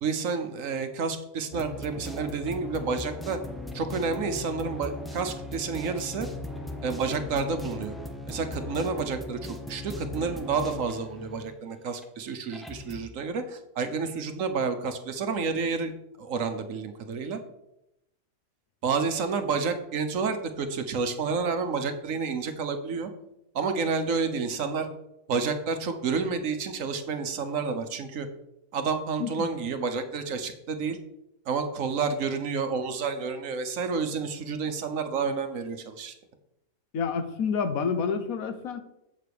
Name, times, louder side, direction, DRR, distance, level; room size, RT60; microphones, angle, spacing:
voice 1, 0.0-3.4 3.7-6.3 6.8-7.9 8.3-15.9 16.2-17.4 18.8-23.1 23.5-24.9 25.3-28.3 28.7-31.0 31.5-36.1, right 5 dB, 70° right, 8 dB, 1.2 m, -30 dB
sound 1, 1.5-11.6 12.0-12.1 12.5-13.1, left 2 dB, ahead, 0.6 m, -38 dB
voice 2, 36.9-38.8, left 6 dB, 80° left, 8 dB, 1.3 m, -28 dB
7.9 x 4.7 x 6.9 m, 0.86 s
omnidirectional pair, 1.5 m